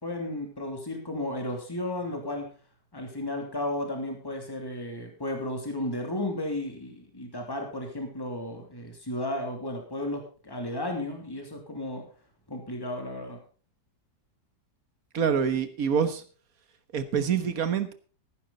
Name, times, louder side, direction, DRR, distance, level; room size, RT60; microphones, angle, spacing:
voice 1, 0.0-2.5 2.9-12.0 12.5-13.4, left 1 dB, 15° left, 2 dB, 2.9 m, -34 dB
voice 2, 15.1-16.2 16.9-17.9, right 7 dB, 55° right, 11 dB, 1.7 m, -26 dB
14.0 x 12.0 x 4.1 m, 0.38 s
omnidirectional pair, 1.8 m